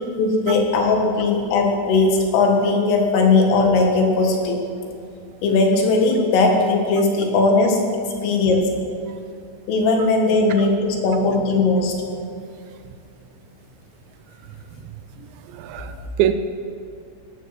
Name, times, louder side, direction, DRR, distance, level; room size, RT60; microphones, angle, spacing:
voice 1, 0.2-4.6 5.4-7.8 8.2-8.7 9.7-12.0, left 3 dB, 90° left, 2 dB, 4.5 m, -18 dB
voice 2, 15.1-16.3, right 12 dB, 80° right, 10 dB, 2.8 m, -25 dB
16.0 x 13.0 x 5.9 m, 2.5 s
omnidirectional pair, 5.6 m